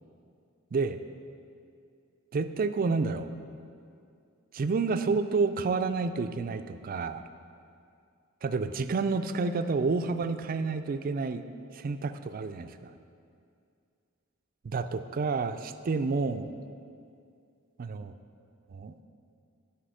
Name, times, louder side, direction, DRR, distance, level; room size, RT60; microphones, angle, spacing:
voice 1, 2.3-3.3 4.5-7.2 8.4-11.4 11.7-12.9 14.6-16.5 17.8-18.1 18.7-18.9, right 4 dB, 40° right, 10 dB, 0.3 m, -29 dB
10.0 x 5.9 x 4.9 m, 2.4 s
head